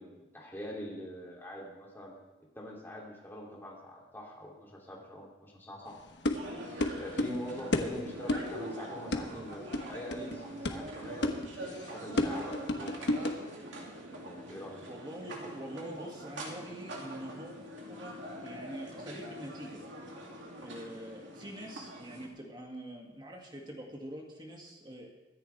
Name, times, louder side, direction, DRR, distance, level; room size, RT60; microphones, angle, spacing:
voice 1, 0.0-2.2 2.5-6.0 7.0-13.0 14.1-14.8, equal, 10° left, -3 dB, 2.8 m, -44 dB
sound 1, 5.9-13.5, left 1 dB, 70° left, 1.2 m, -33 dB
sound 2, 6.3-22.3, right 1 dB, 85° right, 2.7 m, -44 dB
voice 2, 14.9-19.8 20.3-25.1, equal, 25° right, 0 dB, 2.2 m, -45 dB
23.5 x 10.5 x 3.4 m, 1.1 s
head